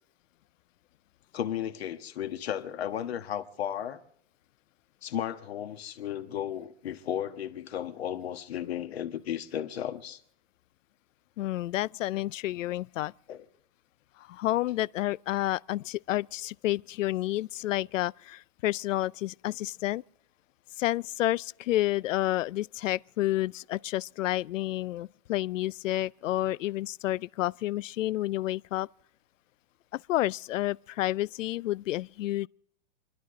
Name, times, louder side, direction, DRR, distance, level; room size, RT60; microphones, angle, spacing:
voice 1, 1.3-4.0 5.0-10.2 13.3-13.4, left 10 dB, 55° left, 1.4 m, -34 dB
voice 2, 11.4-13.1 14.2-20.0 20.8-28.9 29.9-32.5, left 15 dB, 85° left, 0.5 m, -30 dB
28.5 x 11.5 x 3.8 m
hypercardioid pair, 175°, 37 cm